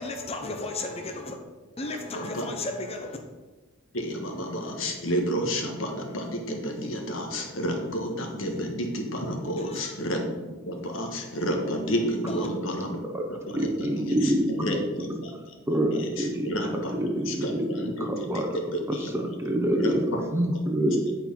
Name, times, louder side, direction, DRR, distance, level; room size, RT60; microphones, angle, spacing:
voice 1, 0.0-1.3 1.8-3.2 9.6-9.9 12.3-12.5, left 2 dB, 30° left, 3 dB, 0.8 m, -34 dB
voice 2, 2.1-2.5 3.9-13.0 13.3-15.5 16.0-16.9 17.2-18.4 18.7-19.1 19.7-20.4, equal, 80° left, 2 dB, 1.4 m, -31 dB
voice 3, 13.5-14.5 15.7-16.5 17.0-18.5 19.1-21.1, right 1 dB, 15° right, 3 dB, 0.9 m, -26 dB
8.3 x 4.6 x 5.4 m, 1.2 s
head